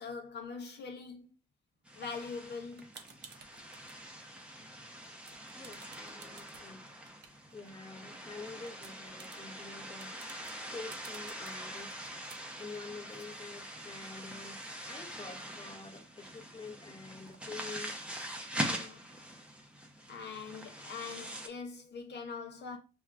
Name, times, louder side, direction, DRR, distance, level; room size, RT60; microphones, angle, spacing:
voice 1, 0.0-1.3 1.9-2.9 13.0-13.1 18.7-19.1 20.1-22.8, left 5 dB, 60° left, 0.7 m, -43 dB
sound 1, 1.9-21.5, equal, 5° right, 0.7 m, -43 dB
sound 2, 2.1-4.0 4.4-4.8 5.0-8.0 8.4-14.6 14.9-15.0 15.2-16.7 17.3-17.4, right 6 dB, 60° right, 0.8 m, -56 dB
voice 2, 5.5-6.9 7.3-12.1 12.6-14.6 14.8-18.0 19.2-19.4, left 4 dB, 25° left, 0.9 m, -48 dB
6.1 x 2.3 x 2.3 m
cardioid pair, 90°, 20 cm